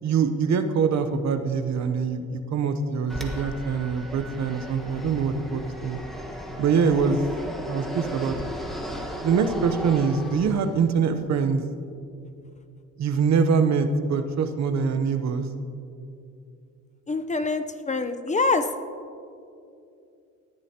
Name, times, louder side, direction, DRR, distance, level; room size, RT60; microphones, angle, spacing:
voice 1, 0.0-6.0 6.6-7.2 7.7-8.4 9.2-11.6 13.0-15.5, right 5 dB, 65° right, 9 dB, 0.9 m, -24 dB
Fixed-wing aircraft airplane, 3.1-10.9, equal, ahead, 1.4 m, -35 dB
voice 2, 17.1-18.7, left 3 dB, 25° left, 8 dB, 0.7 m, -25 dB
18.5 x 11.0 x 2.9 m, 2.5 s
cardioid pair, 90°, 30 cm